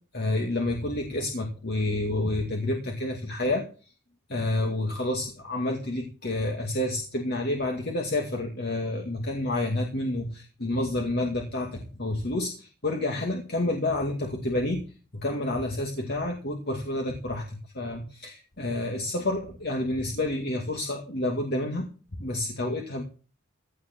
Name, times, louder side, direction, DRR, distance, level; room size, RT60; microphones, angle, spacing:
voice 1, 0.1-3.6 4.3-14.8 15.1-21.9 22.2-23.0, left 1 dB, 50° left, 2 dB, 2.3 m, -29 dB
16.5 x 9.5 x 4.6 m, 0.36 s
head